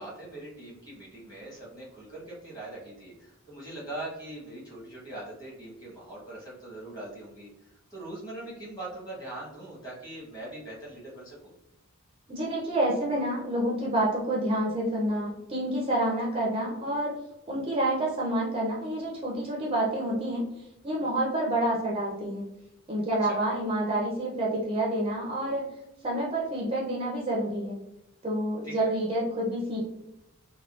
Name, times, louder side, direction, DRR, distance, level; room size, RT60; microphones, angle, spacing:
voice 1, 0.0-11.4 23.2-23.4 28.6-28.9, right 1 dB, 15° left, -6 dB, 1.0 m, -41 dB
voice 2, 12.3-17.1 17.5-20.5 20.8-22.4 22.9-25.7 26.0-27.7 28.2-29.8, right 1 dB, 25° right, -3 dB, 0.4 m, -28 dB
3.5 x 2.1 x 2.3 m, 0.87 s
head